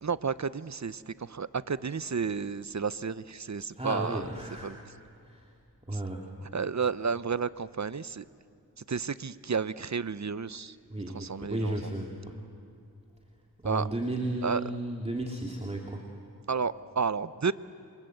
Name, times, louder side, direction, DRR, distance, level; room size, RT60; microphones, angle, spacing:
voice 1, 0.0-4.2 4.6-4.8 5.9-6.0 6.5-8.2 8.8-10.8 11.1-11.8 13.6-13.9 14.4-14.6 16.5-17.5, right 5 dB, 45° right, 16 dB, 0.8 m, -31 dB
voice 2, 3.8-4.9 5.2-5.5 5.9-6.3 10.5-10.6 10.9-12.4 13.6-16.1, right 1 dB, 15° right, 0 dB, 2.7 m, -34 dB
28.5 x 25.0 x 8.0 m, 2.4 s
wide cardioid pair, 55°, 39 cm